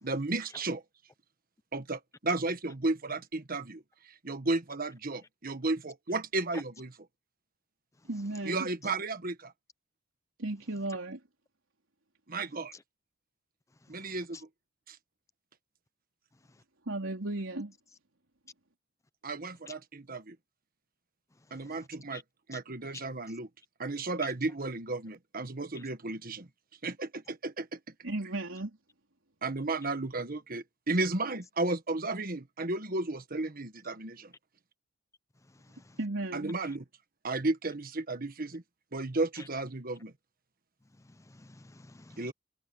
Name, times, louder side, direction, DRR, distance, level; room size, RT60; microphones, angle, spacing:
voice 1, 0.0-0.8 1.7-6.9 8.4-9.5 12.3-12.7 13.9-14.5 14.9-15.0 19.2-20.4 21.5-22.2 22.5-23.5 23.8-26.5 26.8-27.8 29.4-34.3 36.3-36.8 37.2-38.6 38.9-40.1 42.2-42.3, right 2 dB, 45° right, 1.5 m, -33 dB
voice 2, 8.1-8.7 10.4-11.2 16.9-17.7 28.0-28.7 36.0-36.6, right 2 dB, 85° right, 3.7 m, -35 dB
voice 3, 35.5-36.0 41.0-42.3, left 3 dB, 15° left, 0.5 m, -52 dB
head